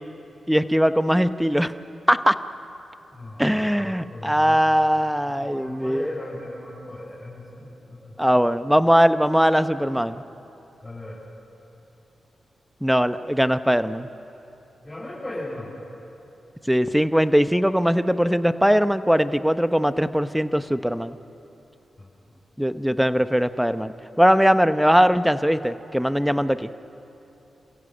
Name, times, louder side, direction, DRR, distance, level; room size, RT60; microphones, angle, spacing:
voice 1, 0.5-1.7 2.1-2.3 3.4-6.1 8.2-10.2 12.8-14.1 16.7-21.2 22.6-23.9 24.2-26.7, equal, 5° right, 11 dB, 0.9 m, -20 dB
voice 2, 3.1-4.6 5.2-8.4 10.8-11.2 14.8-15.8 22.0-22.4, left 1 dB, 20° left, -7 dB, 7.1 m, -37 dB
28.0 x 15.5 x 8.0 m, 3.0 s
cardioid pair, 50°, 0 cm